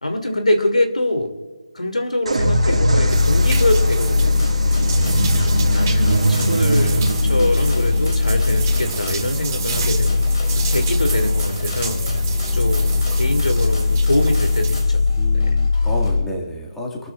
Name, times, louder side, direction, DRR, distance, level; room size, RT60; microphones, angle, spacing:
voice 1, 0.0-1.3 1.7-4.4 5.0-5.3 5.7-10.2 10.6-12.1 12.5-15.0 15.3-15.5, left 1 dB, 80° left, 5 dB, 2.7 m, -24 dB
sound 1, 2.3-9.8, right 2 dB, 60° right, 2.1 m, -23 dB
sound 2, 2.4-16.2, left 4 dB, 40° left, 3.5 m, -20 dB
sound 3, 3.1-14.8, right 5 dB, 20° right, 2.3 m, -31 dB
voice 2, 15.2-17.1, left 1 dB, 5° left, -3 dB, 2.1 m, -30 dB
28.5 x 13.5 x 2.5 m, 1.4 s
figure-of-eight pair, 160°, 4 cm